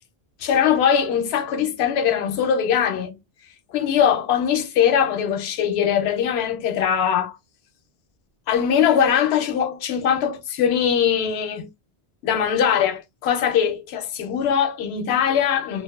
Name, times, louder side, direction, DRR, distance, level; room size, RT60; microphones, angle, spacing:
voice 1, 0.4-3.2 3.7-7.3 8.5-11.7 12.2-15.8, left 8 dB, 80° left, 0.8 m, -21 dB
2.6 x 2.3 x 2.2 m
omnidirectional pair, 1.1 m